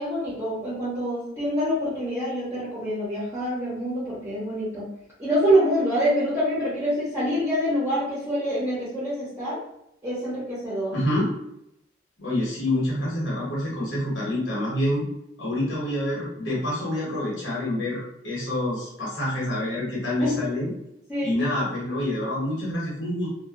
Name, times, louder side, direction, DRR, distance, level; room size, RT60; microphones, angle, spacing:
voice 1, 0.0-4.9 5.2-9.6 10.0-10.9 20.2-20.4 21.1-21.3, equal, 15° right, -10 dB, 0.7 m, -26 dB
voice 2, 10.9-11.3 12.2-15.1 15.4-20.7 21.2-23.3, left 1 dB, 90° left, -5 dB, 1.1 m, -27 dB
2.6 x 2.2 x 2.3 m, 0.81 s
head